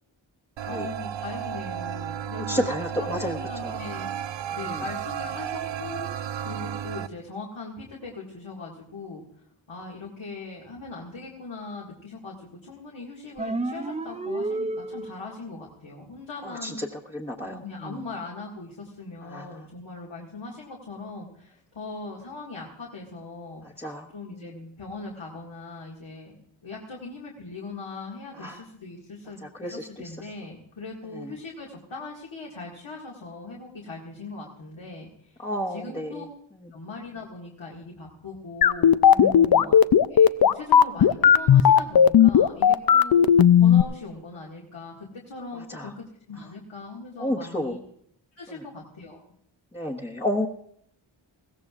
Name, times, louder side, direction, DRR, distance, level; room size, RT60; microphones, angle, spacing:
sound 1, 0.6-7.1, right 9 dB, 65° right, 0.6 m, -33 dB
voice 1, 0.7-4.1 4.5-9.2 9.7-16.8 17.4-26.4 26.6-35.4 35.7-36.2 36.7-39.2 39.5-39.8 40.1-47.8 48.4-49.2, left 3 dB, 70° left, -3 dB, 2.1 m, -40 dB
voice 2, 2.3-3.4 3.6-3.7 4.6-4.8 16.6-16.9 17.1-17.6 19.3-19.4 23.8-24.1 24.4-24.6 28.4-28.6 29.6-29.9 35.4-36.2 39.2-39.6 45.7-45.9 47.2-47.8 49.7-50.5, left 1 dB, 10° left, -3 dB, 1.1 m, -30 dB
sound 2, 13.4-15.4, right 2 dB, 15° right, 0.5 m, -31 dB
sound 3, 38.6-43.8, left 8 dB, 50° left, 0.5 m, -15 dB
21.0 x 16.0 x 2.5 m, 0.70 s
cardioid pair, 65°, 49 cm